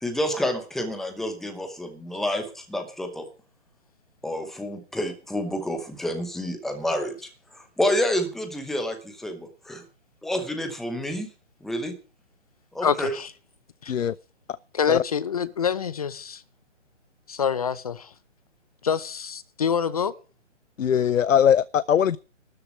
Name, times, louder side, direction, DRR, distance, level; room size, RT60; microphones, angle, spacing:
voice 1, 0.0-3.2 4.2-9.8 10.2-11.3 11.6-11.9 12.7-13.1, left 1 dB, ahead, 0.8 m, -29 dB
voice 2, 12.8-13.3 13.8-13.9 14.7-16.4 17.3-18.1 18.8-20.1, left 7 dB, 30° left, 0.7 m, -26 dB
voice 3, 20.8-22.2, left 9 dB, 80° left, 0.6 m, -20 dB
13.0 x 6.7 x 9.5 m
figure-of-eight pair, 150°, 38 cm